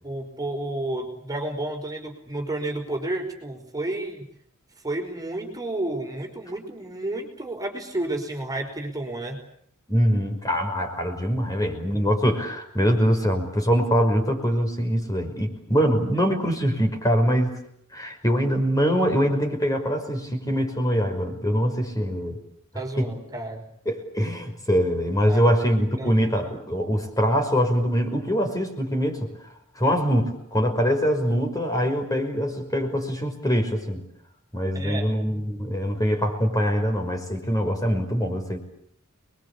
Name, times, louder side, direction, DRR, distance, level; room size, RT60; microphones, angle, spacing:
voice 1, 0.0-4.2 4.8-9.4 22.7-23.6 25.3-25.4 26.0-26.3 34.7-35.1, right 2 dB, 15° right, 3 dB, 5.0 m, -31 dB
voice 2, 9.9-17.5 17.9-22.4 23.0-23.1 23.9-29.3 29.8-34.0 34.5-38.6, equal, 15° left, 5 dB, 5.7 m, -23 dB
29.5 x 22.5 x 8.5 m, 0.67 s
head